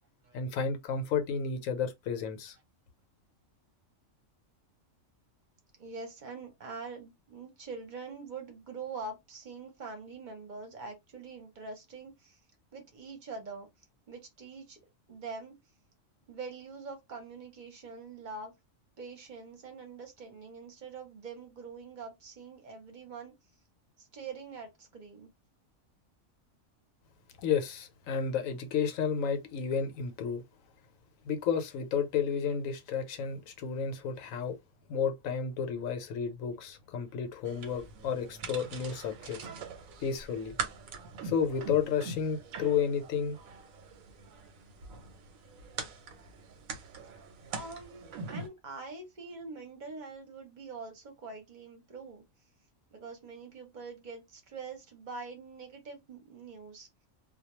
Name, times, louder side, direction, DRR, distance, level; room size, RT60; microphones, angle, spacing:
voice 1, 0.3-2.6 27.4-30.4 31.2-34.6 34.9-39.4 40.0-40.5 41.2-43.4, left 6 dB, 80° left, 1.0 m, -32 dB
voice 2, 5.8-12.4 12.7-13.7 14.1-14.8 15.1-15.6 16.3-18.5 19.0-23.3 24.0-25.3 43.8-43.9 47.5-52.2 52.9-56.9, right 4 dB, 40° right, 0.8 m, -44 dB
sound 1, 37.4-48.5, right 4 dB, 85° right, 1.1 m, -43 dB
2.3 x 2.2 x 2.9 m
omnidirectional pair, 1.4 m